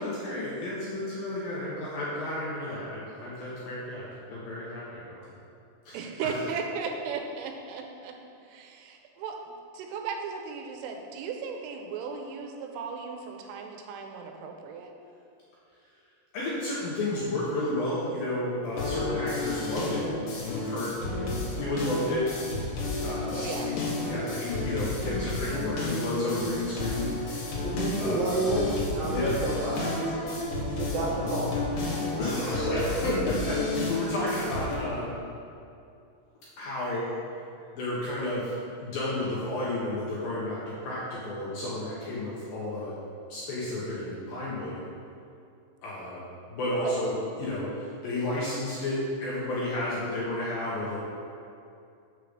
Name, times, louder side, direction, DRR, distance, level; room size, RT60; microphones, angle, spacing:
voice 1, 0.0-5.2 5.9-6.0 6.3-6.4 16.3-20.0 20.4-22.3 23.0-23.7 24.0-27.4 28.0-28.4 29.1-29.3 32.2-33.6 33.9-35.2 36.6-37.1 37.7-38.5 38.8-42.9 43.3-44.8 45.8-46.2 46.5-51.0, left 1 dB, 80° left, -7 dB, 2.0 m, -32 dB
voice 2, 5.9-8.1 8.5-14.9 23.3-23.7 46.8-46.9, right 5 dB, 85° right, 3 dB, 3.2 m, -36 dB
sound 1, 18.8-34.8, left 2 dB, 65° left, 2.2 m, -32 dB
voice 3, 27.6-28.6 28.9-30.1 30.6-31.5 31.8-32.2 36.8-37.0, right 2 dB, 70° right, -7 dB, 2.2 m, -30 dB
7.4 x 5.1 x 6.4 m, 2.5 s
omnidirectional pair, 5.8 m